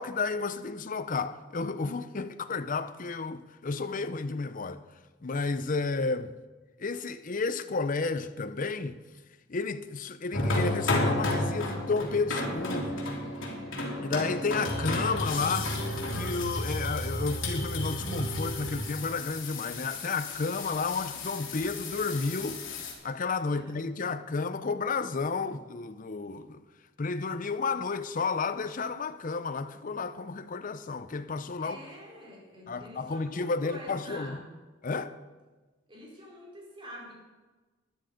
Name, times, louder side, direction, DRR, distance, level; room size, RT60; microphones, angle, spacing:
voice 1, 0.0-4.8 5.2-6.4 6.8-9.0 9.5-13.0 14.0-15.7 16.1-26.6 27.0-31.8 32.7-34.4 34.8-35.2, left 4 dB, 40° left, 0.6 m, -32 dB
sound 1, 10.3-22.9, left 1 dB, 85° left, 3.0 m, -32 dB
voice 2, 31.6-34.6 35.9-37.1, equal, 25° right, 4.4 m, -46 dB
13.0 x 11.0 x 5.1 m
head